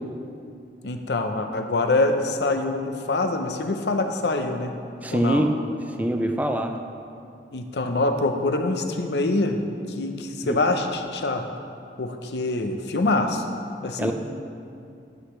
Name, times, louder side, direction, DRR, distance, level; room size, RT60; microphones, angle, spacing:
voice 1, 0.8-4.8 5.1-5.5 7.5-9.6 10.0-11.5 12.0-13.4 13.8-14.1, left 2 dB, 75° left, 6 dB, 0.7 m, -25 dB
voice 2, 5.0-5.5 6.0-6.8 10.4-10.6 14.0-14.1, right 1 dB, 10° right, 5 dB, 0.4 m, -24 dB
11.5 x 7.9 x 3.2 m, 2.5 s
head